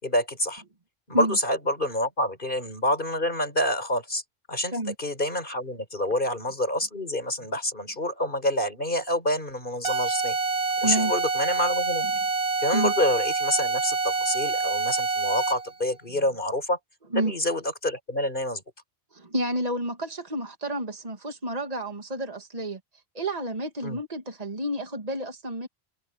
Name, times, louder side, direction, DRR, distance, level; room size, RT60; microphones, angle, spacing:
voice 1, 0.0-0.6 1.1-4.2 4.5-10.4 10.8-12.1 12.6-16.8 17.1-18.6 23.8-24.0, left 1 dB, 55° left, 5.5 m, -27 dB
sound 1, 9.8-15.7, right 4 dB, 75° right, 1.6 m, -27 dB
voice 2, 10.8-11.1 12.0-12.1 12.7-12.9 17.1-17.3 19.1-22.8 23.1-25.7, right 1 dB, 40° right, 2.2 m, -30 dB
omnidirectional pair, 1.1 m